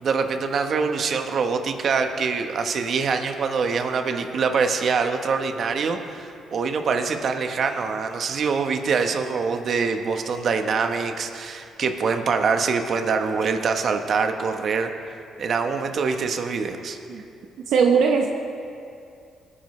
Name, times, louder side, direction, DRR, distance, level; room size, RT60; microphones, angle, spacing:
voice 1, 0.0-17.0, right 5 dB, 55° right, 6 dB, 1.1 m, -24 dB
voice 2, 17.7-18.3, right 6 dB, 75° right, 2 dB, 0.9 m, -19 dB
22.0 x 10.0 x 3.2 m, 2.5 s
cardioid pair, 90°, 0 cm